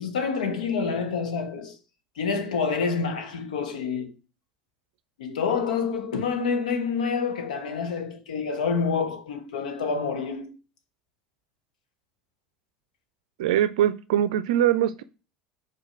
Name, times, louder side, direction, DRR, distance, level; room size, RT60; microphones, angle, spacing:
voice 1, 0.0-1.8 2.2-4.1 5.2-10.6, left 5 dB, 75° left, 1.1 m, -27 dB
voice 2, 13.4-15.0, right 11 dB, 65° right, 0.4 m, -22 dB
5.0 x 4.5 x 4.9 m
figure-of-eight pair, 70°, 4 cm